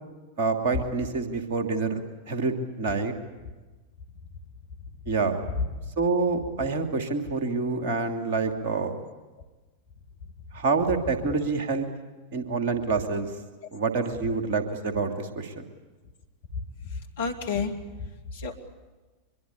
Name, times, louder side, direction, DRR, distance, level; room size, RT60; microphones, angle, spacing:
voice 1, 0.4-2.0 2.3-3.1 5.1-5.4 6.0-9.0 10.5-11.9 12.3-13.3 13.7-15.6, right 4 dB, 50° right, 5 dB, 2.8 m, -27 dB
voice 2, 16.9-17.7 18.0-18.5, left 5 dB, 60° left, 4 dB, 2.6 m, -30 dB
24.5 x 22.5 x 8.5 m, 1.2 s
figure-of-eight pair, 90°, 0 cm